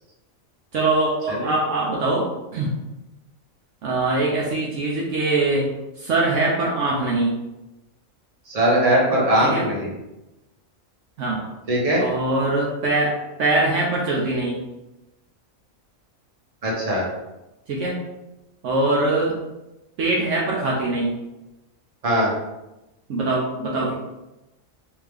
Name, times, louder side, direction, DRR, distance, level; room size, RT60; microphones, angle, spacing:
voice 1, 0.7-2.7 3.8-5.7 6.0-7.3 9.4-9.6 11.2-11.5 12.0-14.6 17.7-18.0 18.6-19.4 20.0-21.1 23.1-23.9, right 2 dB, 70° right, -3 dB, 1.0 m, -22 dB
voice 2, 8.5-9.9 11.7-12.0 16.6-17.1 22.0-22.3, right 1 dB, 30° right, -4 dB, 1.0 m, -20 dB
3.4 x 2.8 x 3.4 m, 0.97 s
omnidirectional pair, 1.4 m